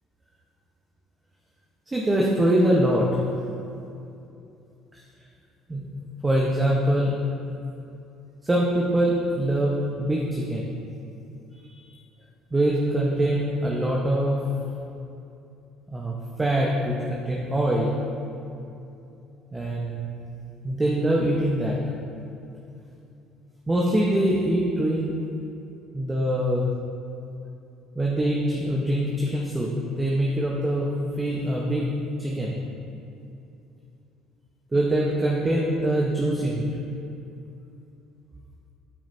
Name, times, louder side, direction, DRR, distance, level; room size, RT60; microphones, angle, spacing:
voice 1, 1.9-3.2 4.9-5.0 5.7-5.8 6.2-7.1 8.4-10.7 11.6-11.9 12.5-14.4 15.9-18.0 19.5-20.1 20.6-21.8 23.7-25.2 25.9-26.7 27.9-29.7 30.0-30.9 31.2-31.9 32.2-32.6 34.7-36.7, right 1 dB, 20° right, -3 dB, 1.2 m, -24 dB
13.5 x 9.2 x 2.8 m, 2.7 s
figure-of-eight pair, 55°, 0 cm